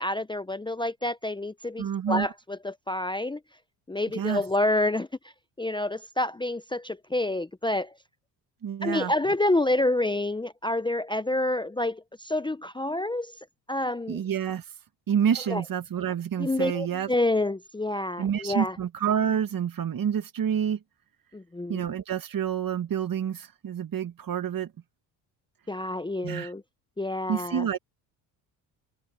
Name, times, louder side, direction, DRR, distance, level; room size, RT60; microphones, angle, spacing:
voice 1, 0.0-3.4 3.9-5.1 5.6-8.0 8.8-13.3 13.7-14.2 15.5-15.6 16.4-18.8 21.3-21.8 25.7-26.6 27.0-27.7, left 2 dB, 10° left, 0.8 m, -28 dB
voice 2, 1.8-2.3 4.1-4.4 8.6-9.1 14.1-14.6 15.1-17.1 18.2-20.8 21.7-24.7 26.2-26.5 27.3-27.8, right 8 dB, 45° right, 1.8 m, -28 dB
supercardioid pair, 70°, 47 cm